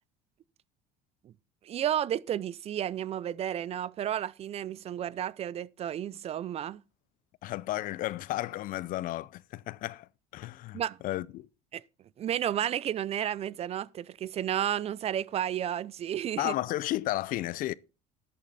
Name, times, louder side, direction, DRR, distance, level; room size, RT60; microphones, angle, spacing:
voice 1, 1.6-6.8 10.7-11.0 11.7-11.8 12.2-16.5, right 10 dB, 40° right, 0.5 m, -32 dB
voice 2, 7.4-11.5 16.4-17.7, left 16 dB, 55° left, 0.5 m, -33 dB
12.5 x 8.4 x 4.1 m
supercardioid pair, 110°, 17 cm